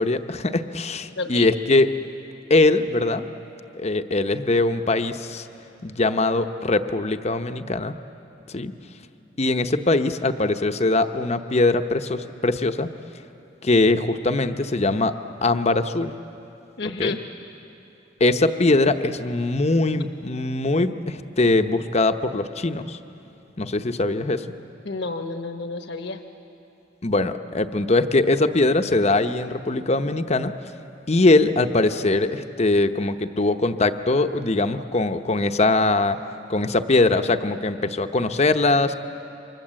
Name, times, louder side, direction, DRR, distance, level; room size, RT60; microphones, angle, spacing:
voice 1, 0.0-1.9 2.5-3.3 3.7-5.5 5.8-7.9 8.5-8.7 9.4-12.9 13.6-15.2 15.4-16.1 17.0-17.2 18.2-23.0 23.6-24.5 27.0-30.5 31.1-36.2 36.5-38.9, left 2 dB, 35° left, 8 dB, 0.8 m, -21 dB
voice 2, 1.2-1.5 16.8-17.2 24.8-26.2, left 3 dB, 65° left, 6 dB, 1.1 m, -30 dB
29.0 x 25.0 x 7.6 m, 2.9 s
head